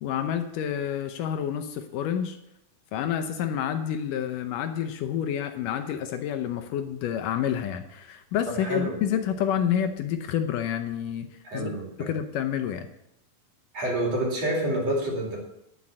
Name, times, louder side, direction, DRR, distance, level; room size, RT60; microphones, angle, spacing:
voice 1, 0.0-2.4 2.9-11.3 11.5-11.7 12.0-12.9, left 9 dB, 75° left, 7 dB, 2.3 m, -29 dB
voice 2, 8.5-9.0 11.4-12.1 13.7-15.4, right 1 dB, 50° right, -1 dB, 3.9 m, -28 dB
9.9 x 9.2 x 7.4 m, 0.81 s
omnidirectional pair, 4.0 m